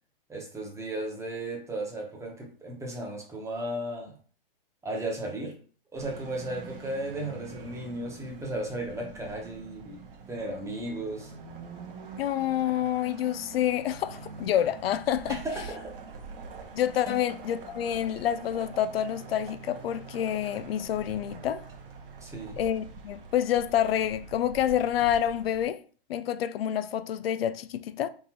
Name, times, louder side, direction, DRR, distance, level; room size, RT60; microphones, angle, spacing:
voice 1, 0.3-4.2 4.8-5.6 5.9-11.3 15.3-16.0 17.0-17.2 22.2-22.6, right 1 dB, 10° right, 1.1 m, -35 dB
sound 1, 5.9-25.6, right 5 dB, 65° right, 1.4 m, -45 dB
voice 2, 12.2-15.4 16.7-21.7 22.6-25.8 26.1-28.1, left 10 dB, 80° left, 0.4 m, -28 dB
3.8 x 3.7 x 2.9 m
hypercardioid pair, 125°, 30 cm